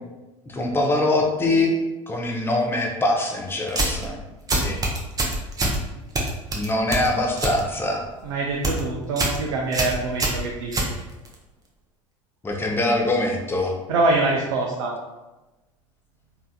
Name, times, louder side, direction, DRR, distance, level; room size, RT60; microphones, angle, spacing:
voice 1, 0.5-1.7 2.1-4.2 4.5-4.8 6.5-8.0 12.4-13.8, left 2 dB, 15° left, 0 dB, 0.6 m, -23 dB
sound 1, 3.7-4.1 4.5-5.8 6.1-7.6 7.9-8.2 8.5-8.8 9.2-9.4 9.7-11.3, right 2 dB, 20° right, 0.7 m, -24 dB
voice 2, 8.2-10.9 13.9-15.0, right 2 dB, 70° right, -2 dB, 0.5 m, -24 dB
3.3 x 2.7 x 2.2 m, 1.1 s
hypercardioid pair, 75°, 17 cm